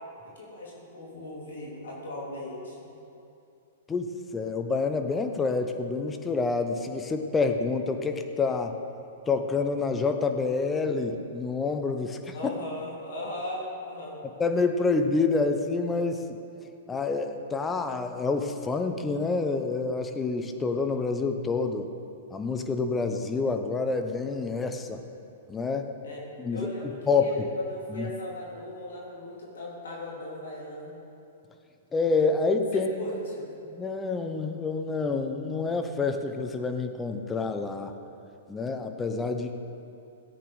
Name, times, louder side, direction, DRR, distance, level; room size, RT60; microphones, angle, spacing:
voice 1, 0.4-2.9 12.3-14.2 26.0-26.2 26.5-31.0 32.7-33.5, left 1 dB, 80° left, -4 dB, 3.5 m, -38 dB
voice 2, 3.9-8.8 9.3-12.5 14.4-16.4 16.9-21.9 22.3-25.0 25.5-25.9 26.4-27.3 27.9-28.1 31.9-33.1 33.7-37.9 38.5-39.5, left 4 dB, 15° left, 6 dB, 1.0 m, -28 dB
17.0 x 8.6 x 5.1 m, 2.6 s
hypercardioid pair, 120°, 0 cm